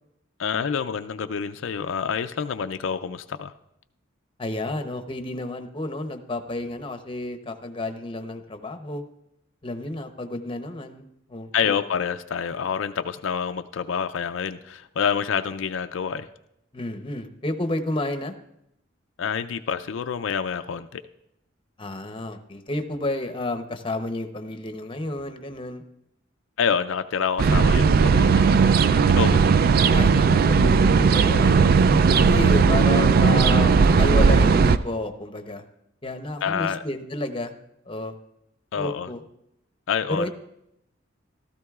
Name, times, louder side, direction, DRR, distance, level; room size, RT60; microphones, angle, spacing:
voice 1, 0.4-3.5 11.5-16.3 19.2-21.0 26.6-29.4 36.4-36.8 38.7-39.1 39.9-40.3, left 7 dB, 80° left, 9 dB, 0.4 m, -27 dB
voice 2, 4.4-9.0 9.6-11.7 16.7-18.3 21.8-25.8 29.9-35.6 36.0-37.5 37.9-38.1 38.7-39.2 40.1-40.3, left 2 dB, 25° left, 8 dB, 0.7 m, -31 dB
sound 1, 27.4-34.8, right 5 dB, 50° right, 0.3 m, -17 dB
15.5 x 13.0 x 2.4 m, 0.81 s
head